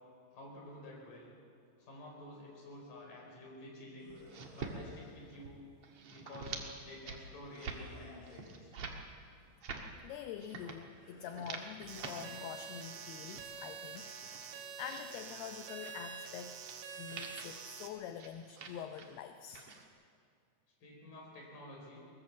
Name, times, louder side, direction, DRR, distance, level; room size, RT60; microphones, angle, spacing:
voice 1, 0.3-1.3 1.8-4.2 4.5-5.6 6.1-8.7 20.8-22.0, left 1 dB, 50° left, -1 dB, 5.9 m, -50 dB
sound 1, 4.0-5.1 7.5-8.5 10.9-11.6, left 1 dB, 20° left, 6.7 m, -58 dB
sound 2, 4.2-4.8 5.1-5.5 5.8-6.6 6.9-7.2 7.5-7.8 8.3-9.0 9.4-9.9 10.4-10.8 11.2-12.1 12.6-13.4 14.0-15.0 15.8-16.0 16.7-16.8 17.1-17.5 18.2-19.1 19.4-19.9, right 5 dB, 55° right, 1.7 m, -46 dB
voice 2, 10.0-14.1 14.4-16.5 17.0-19.6, left 8 dB, 75° left, 7 dB, 2.5 m, -46 dB
sound 3, 11.9-17.9, right 7 dB, 75° right, 3.8 m, -47 dB
23.0 x 19.0 x 7.2 m, 2.3 s
omnidirectional pair, 5.2 m